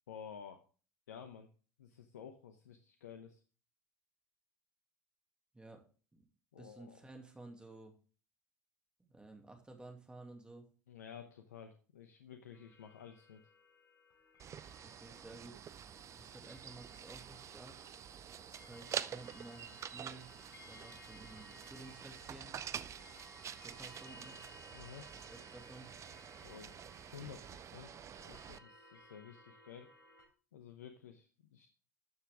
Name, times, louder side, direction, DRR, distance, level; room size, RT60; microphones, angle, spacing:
voice 1, 0.1-0.6 1.1-1.5 1.8-3.4 6.5-7.0 10.9-13.4 24.7-25.1 26.4-26.8 27.1-29.9 30.5-31.7, left 8 dB, 80° left, 6 dB, 0.9 m, -52 dB
voice 2, 6.6-7.9 9.0-10.6 14.8-15.6 16.2-17.8 18.5-20.3 20.7-22.6 23.6-24.4 25.1-25.9, right 2 dB, 10° right, 3 dB, 2.4 m, -54 dB
sound 1, 12.5-30.3, left 2 dB, 50° left, 5.3 m, -60 dB
sound 2, 14.4-28.6, right 9 dB, 35° right, 0.6 m, -47 dB
12.5 x 6.9 x 3.6 m, 0.38 s
figure-of-eight pair, 70°, 9 cm